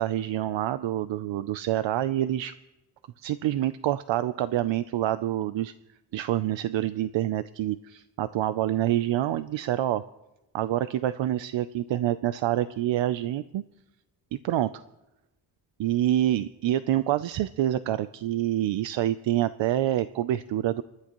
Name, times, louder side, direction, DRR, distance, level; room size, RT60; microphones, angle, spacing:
voice 1, 0.0-2.5 3.2-5.7 6.1-10.0 10.5-13.6 14.3-14.8 15.8-20.8, right 13 dB, 85° right, 13 dB, 0.6 m, -27 dB
28.5 x 12.5 x 3.0 m, 0.98 s
wide cardioid pair, 125°, 44 cm